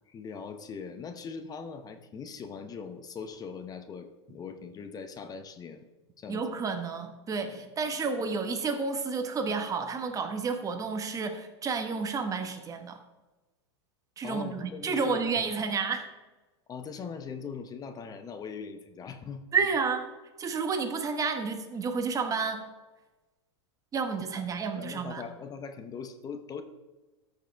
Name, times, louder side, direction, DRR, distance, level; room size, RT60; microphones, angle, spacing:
voice 1, 0.1-5.8 6.2-6.4 14.2-15.6 16.7-19.5 24.4-24.5 24.7-26.6, left 6 dB, 25° left, 8 dB, 0.8 m, -41 dB
voice 2, 6.3-13.0 14.2-16.1 19.5-20.0 20.4-22.6 23.9-25.2, right 5 dB, 25° right, 6 dB, 1.3 m, -30 dB
13.5 x 6.6 x 3.5 m, 1.2 s
hypercardioid pair, 115°, 15 cm